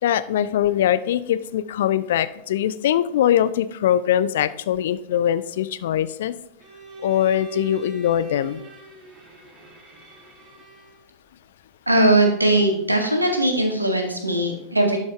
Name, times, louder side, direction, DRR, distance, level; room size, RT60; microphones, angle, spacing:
voice 1, 0.0-6.3 7.0-8.6, left 11 dB, 60° left, 15 dB, 0.4 m, -22 dB
Bowed string instrument, 6.6-11.1, right 3 dB, 25° right, 1.5 m, -40 dB
voice 2, 11.9-15.0, right 1 dB, 85° right, 4 dB, 1.3 m, -19 dB
11.5 x 5.4 x 3.3 m, 0.81 s
figure-of-eight pair, 90°, 0 cm